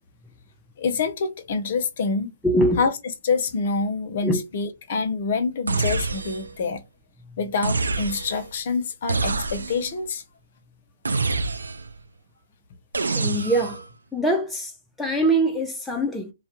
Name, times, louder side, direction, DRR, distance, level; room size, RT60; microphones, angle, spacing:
voice 1, 0.8-2.3 2.8-2.9 3.2-6.8 7.4-10.2, left 4 dB, 45° left, 0.6 m, -26 dB
voice 2, 2.4-2.8 4.2-4.4 13.2-13.8 14.1-14.7 15.0-16.3, right 1 dB, ahead, 0.4 m, -23 dB
sound 1, 5.7-6.6 7.6-8.5 9.1-10.0 11.1-12.0 12.9-13.9, right 3 dB, 90° right, 0.4 m, -26 dB
2.2 x 2.0 x 2.9 m
hypercardioid pair, 150°, 0 cm